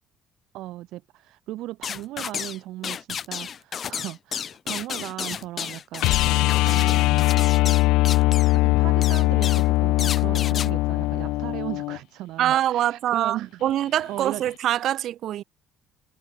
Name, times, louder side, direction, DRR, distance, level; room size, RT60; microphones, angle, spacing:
voice 1, 0.5-7.6 8.2-13.6 14.1-14.4, right 16 dB, 65° right, 1.1 m, -37 dB
sound 1, 1.8-2.6 2.8-8.6 9.0-9.7 10.0-10.7, left 8 dB, 30° left, 1.5 m, -32 dB
sound 2, 6.0-12.0 14.5-14.6, left 20 dB, 90° left, 0.4 m, -21 dB
voice 2, 12.4-15.4, right 12 dB, 50° right, 2.1 m, -24 dB
cardioid pair, 175°, 0 cm